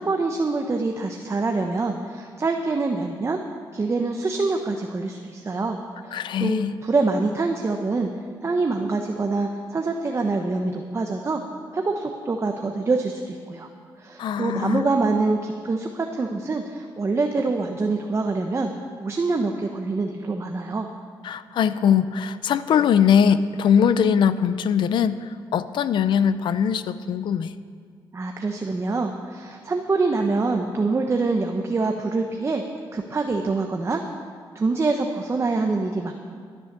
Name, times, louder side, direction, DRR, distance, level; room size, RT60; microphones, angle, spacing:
voice 1, 0.0-3.4 3.7-8.1 8.4-11.4 11.7-13.7 14.0-18.7 19.0-20.9 28.1-32.6 32.9-34.0 34.5-36.1, right 3 dB, 35° right, 3 dB, 1.0 m, -25 dB
voice 2, 6.1-6.7 14.2-14.9 21.2-27.5, left 8 dB, 75° left, 14 dB, 0.6 m, -21 dB
13.0 x 9.8 x 6.8 m, 2.1 s
cardioid pair, 85°, 8 cm